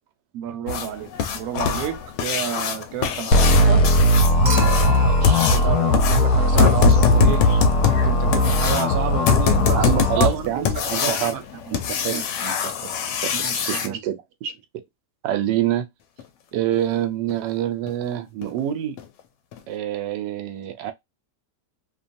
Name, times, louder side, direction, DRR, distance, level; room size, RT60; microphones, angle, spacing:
voice 1, 0.3-3.8 4.4-7.4 7.9-11.7 12.1-12.2 13.3-14.0, right 9 dB, 65° right, 0.9 m, -31 dB
sound 1, 0.7-13.9 16.2-16.3 16.7-16.8 17.3-17.4 17.9-18.0 18.4-18.6 19.0-19.1 19.5-19.6, left 5 dB, 90° left, 1.3 m, -23 dB
sound 2, 3.3-10.2, left 1 dB, 70° left, 1.2 m, -18 dB
Human group actions / Chink clink / Liquid, 4.4-6.8 8.3-8.4, right 1 dB, 40° right, 0.7 m, -32 dB
voice 2, 4.9-5.6 9.7-11.3 11.7-14.6 15.2-15.9 16.5-19.0 19.7-20.9, right 11 dB, 90° right, 1.2 m, -27 dB
3.0 x 2.2 x 2.5 m
omnidirectional pair, 1.8 m